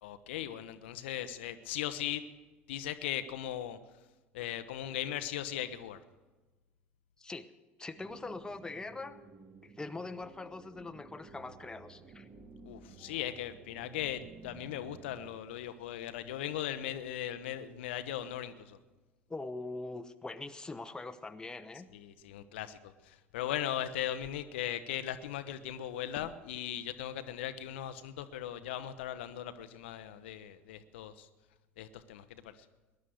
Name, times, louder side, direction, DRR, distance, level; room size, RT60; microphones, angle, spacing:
voice 1, 0.0-2.2 2.7-3.8 4.3-6.0 12.6-18.8 21.9-31.3 31.8-32.6, left 11 dB, 65° left, 11 dB, 0.7 m, -38 dB
voice 2, 7.2-7.5 7.8-9.2 9.6-12.3 19.3-21.9, left 3 dB, 10° left, 10 dB, 0.8 m, -42 dB
sound 1, 8.0-15.4, right 4 dB, 35° right, 2.2 m, -54 dB
19.5 x 11.0 x 6.4 m, 1.2 s
figure-of-eight pair, 65°, 7 cm